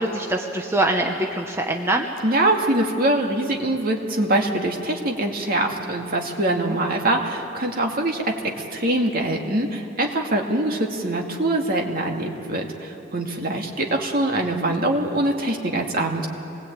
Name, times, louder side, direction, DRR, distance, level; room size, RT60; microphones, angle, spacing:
voice 1, 0.0-2.1 6.6-6.8, right 1 dB, 15° right, 2 dB, 1.1 m, -24 dB
voice 2, 2.2-16.3, right 1 dB, 50° right, 1 dB, 2.4 m, -23 dB
26.0 x 20.5 x 9.0 m, 2.9 s
head